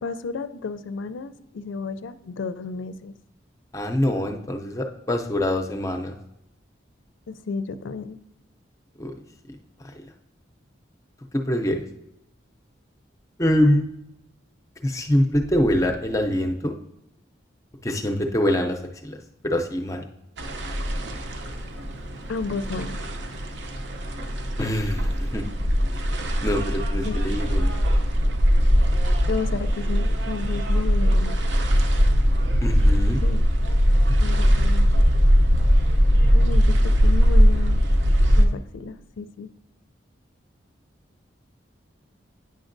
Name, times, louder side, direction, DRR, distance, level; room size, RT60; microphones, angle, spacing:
voice 1, 0.0-3.1 7.3-8.2 22.3-23.0 27.0-27.2 29.3-31.4 33.2-33.4 34.2-34.9 36.3-37.9 38.4-39.5, left 4 dB, 90° left, 13 dB, 0.4 m, -32 dB
voice 2, 3.7-6.2 9.0-9.1 9.8-10.1 11.3-11.9 13.4-13.8 14.8-16.8 17.8-19.2 19.4-20.0 24.6-25.5 26.4-27.7 32.6-33.2, left 1 dB, 15° left, 4 dB, 0.4 m, -24 dB
sound 1, 20.4-38.4, equal, 70° right, 0.6 m, -20 dB
9.1 x 6.1 x 2.6 m, 0.85 s
head